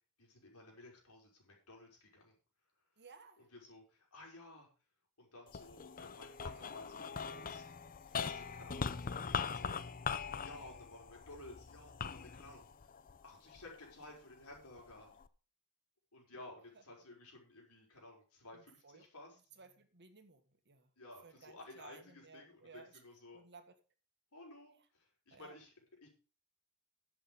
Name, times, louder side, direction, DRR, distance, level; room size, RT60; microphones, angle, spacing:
voice 1, 0.2-2.3 3.4-4.7 5.2-7.6 8.1-12.9 13.2-15.1 16.1-19.4 21.0-23.4 24.3-26.1, left 2 dB, 80° left, -1 dB, 5.6 m, -55 dB
voice 2, 3.0-3.4 10.5-10.7 18.8-19.0 19.6-20.4 20.7-20.9 21.2-22.9 23.3-23.7 25.3-25.5, right 4 dB, 50° right, 8 dB, 1.7 m, -58 dB
sound 1, 5.5-13.9 14.5-15.3, left 6 dB, 40° left, 0.6 m, -42 dB
11.5 x 7.9 x 5.5 m, 0.37 s
head